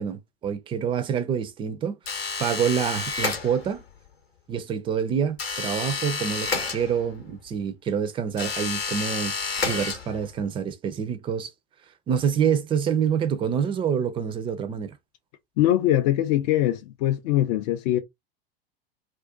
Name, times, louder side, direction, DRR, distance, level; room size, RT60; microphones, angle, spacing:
voice 1, 0.0-3.8 4.5-11.5 12.1-14.9, right 7 dB, 20° right, 0.4 m, -27 dB
sound 1, 2.1-3.9 5.4-7.3 8.3-10.4, left 4 dB, 80° left, 0.8 m, -30 dB
voice 2, 15.6-18.0, left 13 dB, 45° left, 0.4 m, -22 dB
2.4 x 2.2 x 2.4 m
figure-of-eight pair, 80°, 30 cm